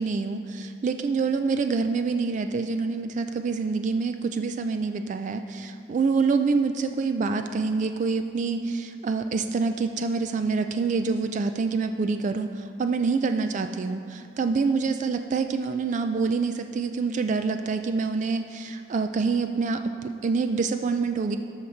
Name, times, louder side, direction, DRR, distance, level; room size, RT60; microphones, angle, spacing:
voice 1, 0.0-21.4, right 4 dB, 45° right, 8 dB, 0.3 m, -26 dB
12.5 x 6.5 x 4.4 m, 2.4 s
head